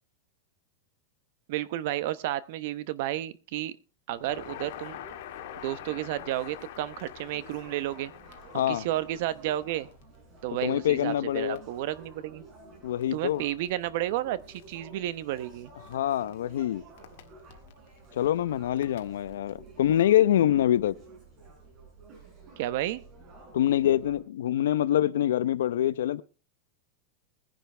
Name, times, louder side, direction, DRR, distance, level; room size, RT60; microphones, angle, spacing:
voice 1, 1.5-3.8 4.1-5.0 5.6-8.1 8.5-9.9 10.4-12.4 13.1-15.7 22.6-23.0, right 14 dB, 60° right, 1.0 m, -32 dB
Crackle, 4.1-19.6, left 12 dB, 65° left, 1.8 m, -48 dB
sound 1, 4.2-24.2, right 3 dB, 30° right, 5.6 m, -52 dB
voice 2, 8.5-8.9 10.6-11.6 12.8-13.4 15.9-16.8 18.1-20.9 23.5-26.2, left 11 dB, 90° left, 0.8 m, -25 dB
20.5 x 10.5 x 3.4 m
supercardioid pair, 150°, 0 cm